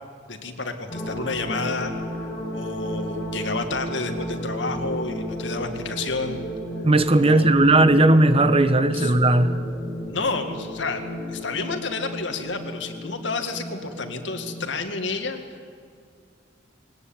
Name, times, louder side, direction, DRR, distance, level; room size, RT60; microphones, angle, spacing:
voice 1, 0.3-1.9 2.5-6.4 7.2-7.7 8.9-9.1 10.1-11.0 11.3-15.4, left 3 dB, 85° left, 6 dB, 2.2 m, -30 dB
sound 1, 0.9-14.7, equal, 25° left, 5.3 m, -33 dB
voice 2, 6.8-9.5, right 2 dB, 30° right, 11 dB, 1.1 m, -17 dB
21.0 x 18.5 x 8.9 m, 2.3 s
head